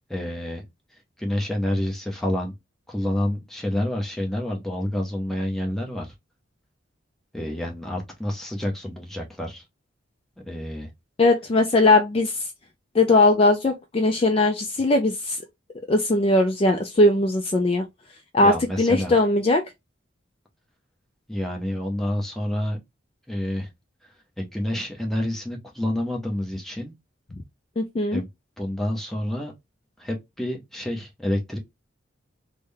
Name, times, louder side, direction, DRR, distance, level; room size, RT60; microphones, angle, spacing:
voice 1, 0.1-0.6 1.2-2.5 2.9-6.1 7.3-9.6 10.5-10.9 18.4-19.2 21.3-22.8 23.3-23.7 24.4-26.9 28.1-28.3 28.6-29.5 30.0-31.6, left 1 dB, ahead, 0.7 m, -28 dB
voice 2, 11.2-12.4 12.9-15.4 15.9-17.8 18.3-19.6 27.8-28.2, left 2 dB, 30° left, 0.4 m, -19 dB
3.6 x 2.1 x 3.3 m
head